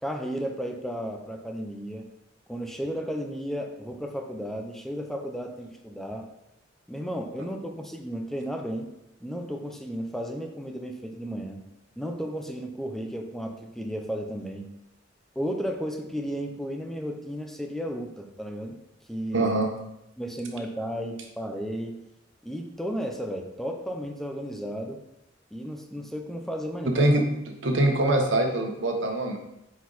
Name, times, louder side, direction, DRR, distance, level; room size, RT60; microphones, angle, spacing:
voice 1, 0.0-2.0 2.5-6.3 6.9-8.9 9.2-11.6 12.0-14.7 15.4-18.8 19.1-19.5 20.2-22.0 22.4-25.0 25.5-27.1, equal, ahead, 3 dB, 0.7 m, -33 dB
voice 2, 19.3-19.7 26.9-27.2 27.6-29.4, right 1 dB, 80° right, 3 dB, 1.3 m, -23 dB
8.7 x 4.7 x 4.1 m, 0.86 s
head